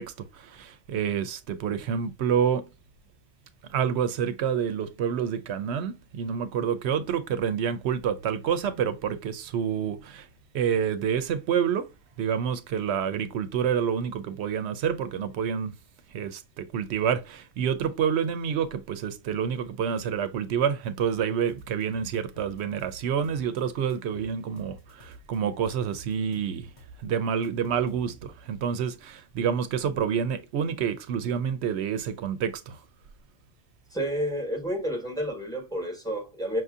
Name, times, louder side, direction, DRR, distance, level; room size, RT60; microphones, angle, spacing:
voice 1, 0.0-2.7 3.7-10.3 10.5-11.9 12.2-15.8 16.1-26.7 27.0-32.8, right 8 dB, 80° right, 0.8 m, -28 dB
sound 1, 21.5-23.6 23.9-25.4 25.7-28.6, equal, 90° left, 1.2 m, -50 dB
voice 2, 33.9-36.6, equal, 5° left, 1.2 m, -30 dB
6.0 x 2.6 x 2.4 m
omnidirectional pair, 1.1 m